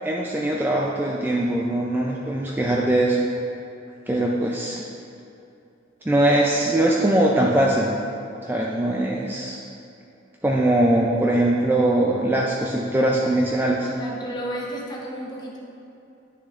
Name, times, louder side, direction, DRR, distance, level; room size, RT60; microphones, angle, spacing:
voice 1, 0.0-3.2 4.1-4.8 6.0-7.9 8.4-9.6 10.4-13.9, right 1 dB, 10° right, -3 dB, 0.4 m, -21 dB
voice 2, 13.8-15.6, equal, 20° left, -2 dB, 0.9 m, -32 dB
9.7 x 6.5 x 2.5 m, 2.7 s
head